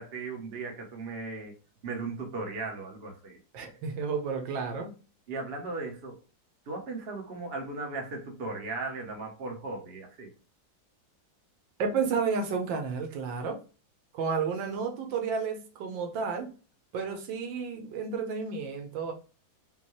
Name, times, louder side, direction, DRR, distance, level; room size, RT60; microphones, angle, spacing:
voice 1, 0.0-1.5 1.8-3.4 5.3-6.2 6.7-10.3, right 3 dB, 40° right, 1.1 m, -37 dB
voice 2, 3.5-4.9 11.8-13.6 14.1-16.5 16.9-19.1, right 5 dB, 80° right, 1.5 m, -31 dB
5.4 x 2.3 x 3.1 m
omnidirectional pair, 2.0 m